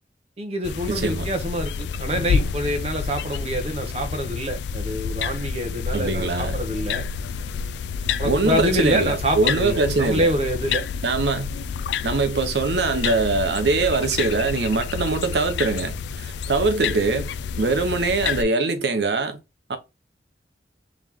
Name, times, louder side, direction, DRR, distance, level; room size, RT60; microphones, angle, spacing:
voice 1, 0.4-7.0 8.2-10.9, equal, 35° right, 0.9 m, -26 dB
sound 1, 0.6-18.4, left 6 dB, 70° left, 0.3 m, -29 dB
voice 2, 0.9-1.3 5.9-6.6 8.2-10.3 11.0-11.5 12.0-17.3 17.6-19.4 19.7-19.8, right 3 dB, 70° right, 0.8 m, -22 dB
3.5 x 3.0 x 3.6 m
head